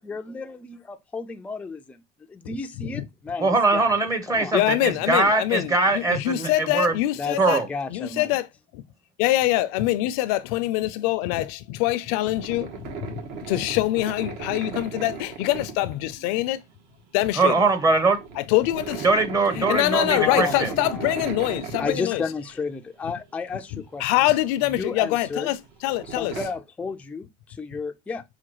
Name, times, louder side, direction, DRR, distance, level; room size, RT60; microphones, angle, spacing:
voice 1, 0.0-2.0 2.3-4.0 4.3-4.6 7.2-8.3 20.1-21.4 21.8-24.3 24.8-25.5 26.1-28.2, left 4 dB, 5° left, 0.3 m, -32 dB
voice 2, 2.4-3.0 4.5-7.6 7.9-8.5 8.7-8.8 9.2-16.6 17.1-17.6 18.4-19.1 19.5-22.2 23.7-25.6 25.8-26.3, left 16 dB, 80° left, 0.5 m, -24 dB
voice 3, 3.4-6.9 7.4-7.7 17.4-18.2 19.0-20.7, right 3 dB, 20° right, 0.7 m, -21 dB
sound 1, 12.0-16.8 17.1-17.3 17.6-22.7 23.2-23.3 24.3-26.5, right 6 dB, 65° right, 1.1 m, -36 dB
5.7 x 2.2 x 3.0 m
cardioid pair, 130°, 19 cm